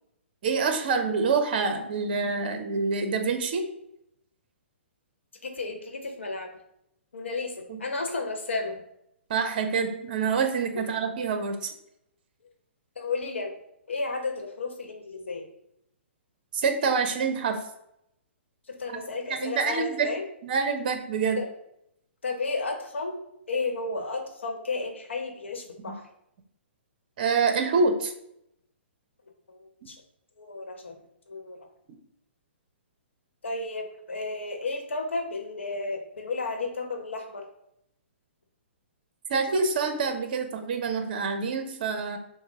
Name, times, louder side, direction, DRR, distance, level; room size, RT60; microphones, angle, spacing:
voice 1, 0.4-3.6 7.7-7.8 9.3-11.7 16.5-17.6 18.9-19.0 19.3-20.1 20.4-21.4 27.2-28.1 39.3-42.2, right 5 dB, 45° right, 7 dB, 0.7 m, -26 dB
voice 2, 5.4-6.5 7.1-8.8 13.0-13.5 13.9-15.5 18.7-20.2 21.4-21.5 22.2-23.2 23.5-26.0 29.5-30.0 30.4-30.9 31.3-31.7 33.4-37.5, left 3 dB, 70° left, 2 dB, 1.0 m, -33 dB
6.1 x 2.1 x 3.5 m, 0.77 s
figure-of-eight pair, 120°, 7 cm